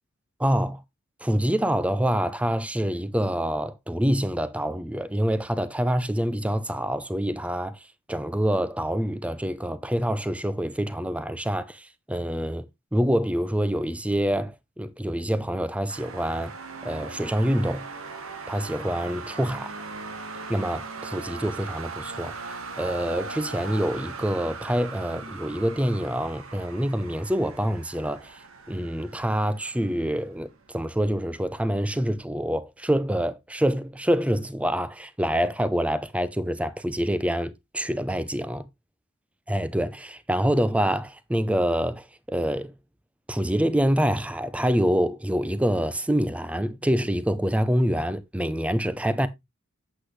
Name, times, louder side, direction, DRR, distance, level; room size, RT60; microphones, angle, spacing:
voice 1, 0.4-0.8 1.2-7.8 8.1-16.5 16.8-17.9 18.5-19.7 20.5-22.3 22.8-28.4 28.7-38.6 39.5-42.7 43.3-49.3, equal, 5° right, 0.5 m, -26 dB
sound 1, 15.9-30.7, right 4 dB, 75° right, 1.4 m, -39 dB
8.4 x 7.9 x 3.1 m
head